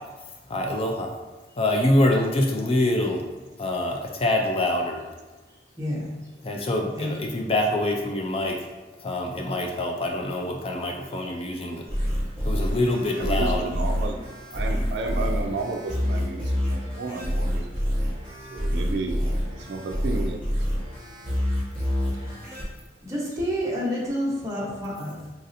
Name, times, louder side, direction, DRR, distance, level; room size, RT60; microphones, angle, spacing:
voice 1, 0.2-1.1 1.6-5.1 6.4-8.7 9.0-11.9 12.4-13.7, left 1 dB, 30° left, 2 dB, 0.3 m, -25 dB
voice 2, 5.8-6.1 7.0-7.1 12.4-12.5 21.1-21.4 22.2-22.4 23.0-25.3, equal, 20° right, -6 dB, 0.9 m, -29 dB
sound 1, 11.9-22.6, equal, 5° left, 1.2 m, -27 dB
voice 3, 13.2-14.2 14.5-18.0 18.5-19.3 19.5-20.8, right 3 dB, 65° right, 3 dB, 0.4 m, -32 dB
4.0 x 2.7 x 2.5 m, 1.2 s
head